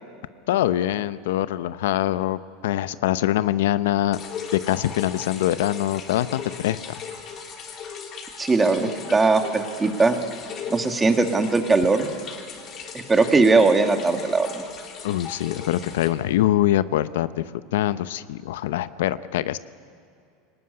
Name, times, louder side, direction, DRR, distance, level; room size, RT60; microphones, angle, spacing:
voice 1, 0.5-4.2 4.7-6.8 15.0-19.6, left 13 dB, 85° left, 15 dB, 0.8 m, -24 dB
sound 1, 4.1-16.1, left 6 dB, 35° left, 3.4 m, -38 dB
voice 2, 8.4-10.2 10.7-12.1 12.9-14.6, right 3 dB, 15° right, 6 dB, 1.9 m, -20 dB
24.0 x 19.0 x 9.7 m, 2.4 s
supercardioid pair, 140°, 0 cm